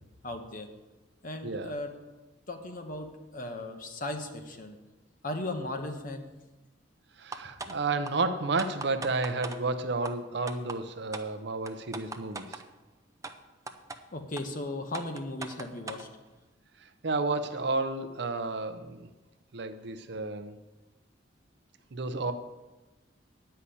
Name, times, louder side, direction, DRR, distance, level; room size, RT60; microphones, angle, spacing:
voice 1, 0.2-0.7 1.2-1.9 2.5-4.8 5.2-6.2 14.1-16.1, left 2 dB, 45° left, 5 dB, 1.2 m, -36 dB
voice 2, 1.4-1.7 7.2-12.6 16.8-19.1 19.5-20.6 21.9-22.3, right 3 dB, 60° right, 10 dB, 0.7 m, -31 dB
sound 1, 7.3-7.8 8.1-8.2 8.6-9.6 10.0-10.1 10.5-10.8 11.1-11.3 11.7-12.6 13.2-13.3 13.7-14.0 14.4-14.5 14.9-16.1, right 3 dB, 15° right, 0.5 m, -39 dB
9.8 x 5.7 x 8.4 m, 1.1 s
head